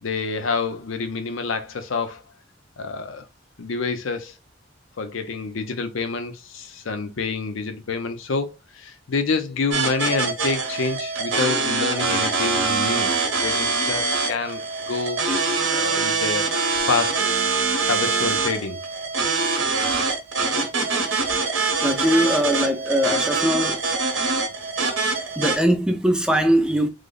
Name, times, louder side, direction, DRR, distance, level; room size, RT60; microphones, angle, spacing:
voice 1, 0.0-2.2 2.8-3.3 3.6-4.3 5.0-13.1 13.4-15.2 15.7-16.5 16.9-17.3 17.8-18.8, left 4 dB, 85° left, 0.6 m, -27 dB
sound 1, 9.7-25.6, right 4 dB, 70° right, 0.9 m, -24 dB
voice 2, 21.8-23.8 25.4-26.9, equal, 5° right, 0.4 m, -21 dB
3.3 x 2.0 x 3.7 m
head